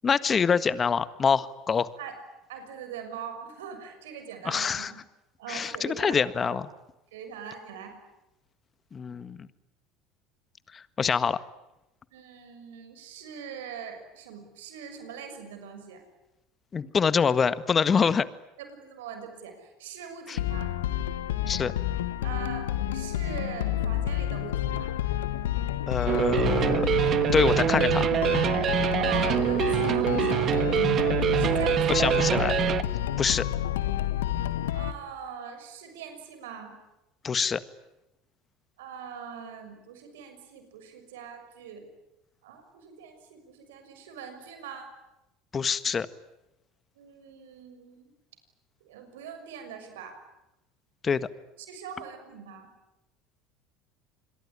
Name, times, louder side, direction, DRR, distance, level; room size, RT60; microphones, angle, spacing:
voice 1, 0.0-1.9 4.4-4.9 5.5-6.7 8.9-9.5 10.7-11.4 16.7-18.3 20.3-20.4 21.5-21.7 25.9-26.9 27.3-28.1 31.9-32.5 33.2-33.4 37.2-37.6 45.5-46.1 51.0-51.3, left 6 dB, 30° left, 15 dB, 1.6 m, -25 dB
voice 2, 2.5-5.0 5.4-6.6 7.1-7.9 12.1-16.0 18.7-20.8 22.2-25.0 28.9-31.1 31.3-32.1 34.7-36.8 38.8-41.9 42.4-44.9 47.0-48.0 48.8-50.2 51.7-52.7, right 7 dB, 80° right, 7 dB, 6.3 m, -42 dB
sound 1, 20.4-34.9, left 12 dB, 85° left, 1.6 m, -29 dB
sound 2, 26.1-32.8, right 10 dB, 45° right, 1.5 m, -25 dB
27.0 x 22.0 x 9.9 m, 0.92 s
hypercardioid pair, 80°, 0 cm